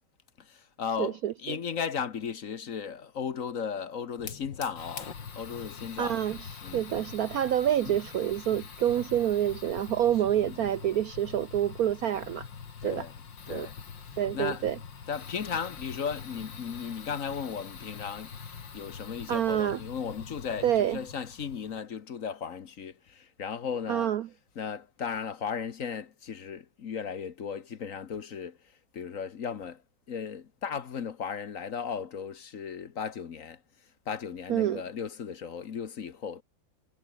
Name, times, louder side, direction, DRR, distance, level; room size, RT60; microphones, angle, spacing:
voice 1, 0.4-5.1 5.4-6.2 6.6-6.8 7.8-7.9 10.4-10.7 12.8-13.1 13.5-13.8 14.3-14.6 15.1-18.4 18.7-24.1 24.6-28.6 28.9-29.8 30.1-33.6 34.1-36.4, left 7 dB, 50° left, 1.3 m, -36 dB
voice 2, 1.0-1.6 6.0-12.5 12.8-13.0 13.5-13.7 14.2-14.8 19.3-19.8 20.6-21.0 23.9-24.3 34.5-34.8, right 11 dB, 70° right, 0.9 m, -27 dB
Fire, 4.2-21.8, left 6 dB, 65° left, 2.8 m, -44 dB
omnidirectional pair, 2.2 m